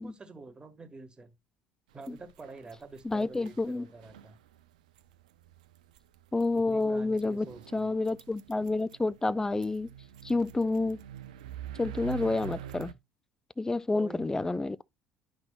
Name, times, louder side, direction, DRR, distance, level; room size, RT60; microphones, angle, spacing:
voice 1, 0.0-1.3 1.9-4.4 6.5-7.9 13.9-14.5, right 3 dB, 25° right, 1.8 m, -47 dB
sound 1, 2.0-12.9, right 9 dB, 80° right, 0.6 m, -46 dB
voice 2, 3.0-3.9 6.3-7.5 7.7-9.9 10.2-11.0 11.8-12.9 13.6-14.8, left 3 dB, 15° left, 0.5 m, -29 dB
10.5 x 5.9 x 2.4 m
hypercardioid pair, 60°, 4 cm